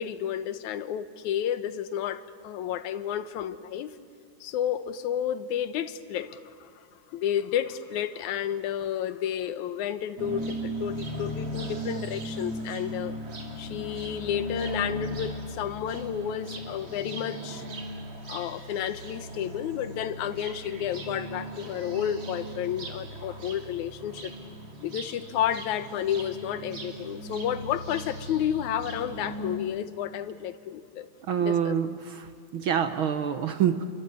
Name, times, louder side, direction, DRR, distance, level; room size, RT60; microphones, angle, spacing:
voice 1, 0.0-4.0 4.4-13.2 13.6-17.7 18.3-24.3 24.8-31.1 31.4-31.7, left 10 dB, 75° left, 11 dB, 2.3 m, -31 dB
sound 1, 10.2-29.6, right 1 dB, 50° right, 3.9 m, -37 dB
voice 2, 31.2-33.8, right 8 dB, 70° right, 9 dB, 1.2 m, -27 dB
28.5 x 23.5 x 8.6 m, 2.3 s
omnidirectional pair, 3.5 m